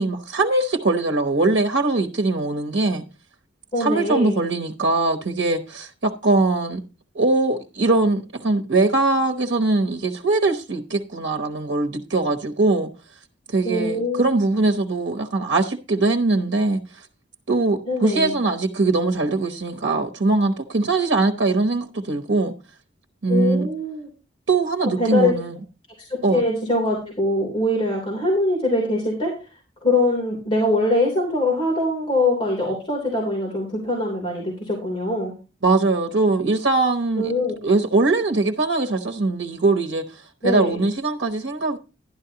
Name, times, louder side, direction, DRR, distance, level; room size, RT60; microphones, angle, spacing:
voice 1, 0.0-3.0 3.8-6.8 7.1-12.9 13.5-16.8 17.5-22.5 23.2-23.7 24.5-25.6 26.2-26.4 35.6-37.3 37.6-41.8, right 3 dB, 80° right, 1.0 m, -21 dB
voice 2, 3.7-4.4 13.6-14.3 17.9-18.3 23.3-24.1 25.0-25.3 26.1-29.3 29.8-35.3 37.2-37.6 40.4-40.8, left 2 dB, 30° left, 3.2 m, -23 dB
12.0 x 10.5 x 2.9 m
head